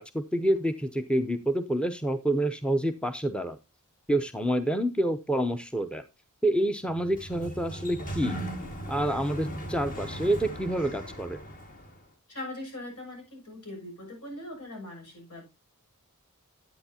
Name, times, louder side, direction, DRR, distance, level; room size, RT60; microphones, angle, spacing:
voice 1, 0.0-3.6 4.1-6.0 6.4-8.4 8.9-11.4, right 1 dB, 5° left, 0.6 m, -28 dB
Sliding door, 6.9-12.0, right 1 dB, 40° left, 1.9 m, -38 dB
voice 2, 12.3-15.4, left 1 dB, 80° left, 6.9 m, -41 dB
10.5 x 8.9 x 2.8 m
head